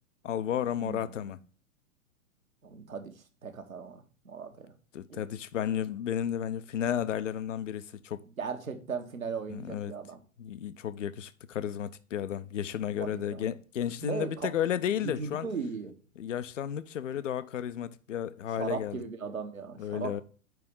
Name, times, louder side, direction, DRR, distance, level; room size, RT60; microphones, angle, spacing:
voice 1, 0.2-1.4 4.9-8.2 9.5-9.9 10.4-15.5 16.2-19.0 19.8-20.2, left 9 dB, 60° left, 0.6 m, -33 dB
voice 2, 0.8-1.3 2.6-4.7 5.1-5.3 8.4-10.2 13.0-13.5 14.0-14.5 15.0-15.9 18.5-20.2, right 5 dB, 75° right, 1.3 m, -38 dB
5.0 x 4.8 x 6.2 m
figure-of-eight pair, 105°, 41 cm